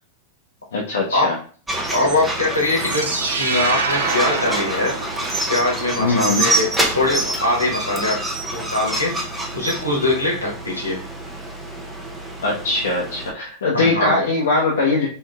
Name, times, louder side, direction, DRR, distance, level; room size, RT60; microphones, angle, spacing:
voice 1, 0.7-1.4 6.0-6.5 12.4-15.1, left 3 dB, 65° left, -4 dB, 0.7 m, -21 dB
sound 1, 1.7-13.3, right 1 dB, 10° right, 0.7 m, -27 dB
voice 2, 1.9-3.0 3.4-4.9 5.5-8.2 8.5-9.2 9.5-11.0 13.7-14.2, left 2 dB, 80° left, -3 dB, 1.2 m, -22 dB
sound 2, 2.5-5.7, right 3 dB, 65° right, 0.6 m, -25 dB
4.7 x 2.6 x 2.3 m, 0.41 s
figure-of-eight pair, 90°, 0 cm